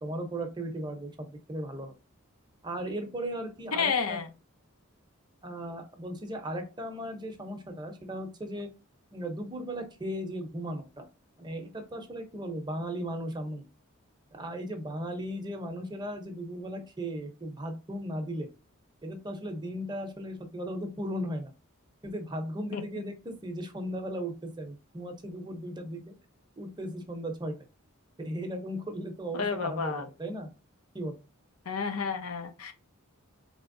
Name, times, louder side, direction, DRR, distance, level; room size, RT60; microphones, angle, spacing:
voice 1, 0.0-1.9 2.6-4.2 5.4-8.7 9.1-11.0 11.4-13.6 14.3-18.5 19.0-21.5 22.0-26.1 26.6-27.6 28.2-30.5 30.9-31.1, equal, 20° right, 5 dB, 0.7 m, -36 dB
voice 2, 3.7-4.3 22.7-22.8 29.3-30.0 31.7-32.7, left 5 dB, 85° left, 7 dB, 0.8 m, -30 dB
4.3 x 3.4 x 2.6 m, 0.30 s
head